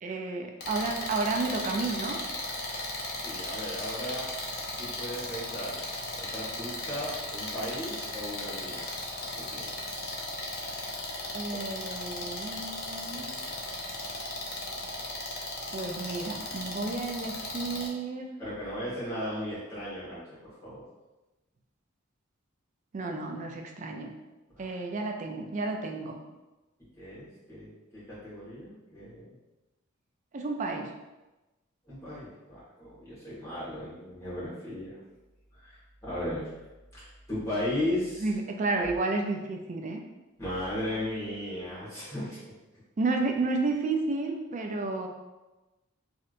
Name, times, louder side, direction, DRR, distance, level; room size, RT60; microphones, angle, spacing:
voice 1, 0.0-2.2 11.3-13.3 15.7-18.3 22.9-24.1 24.6-26.2 30.3-30.9 38.2-40.0 43.0-45.1, right 3 dB, 40° right, 3 dB, 0.3 m, -31 dB
sound 1, 0.6-17.9, left 2 dB, 50° left, 0.7 m, -36 dB
voice 2, 3.2-4.3 4.8-5.8 6.1-8.8 9.4-9.6 15.6-15.9 18.4-20.8 24.5-24.7 27.0-29.3 31.9-35.0 35.5-36.5 36.9-38.3 40.4-42.4, left 1 dB, 15° left, -10 dB, 1.5 m, -36 dB
3.2 x 2.8 x 2.5 m, 1.1 s
head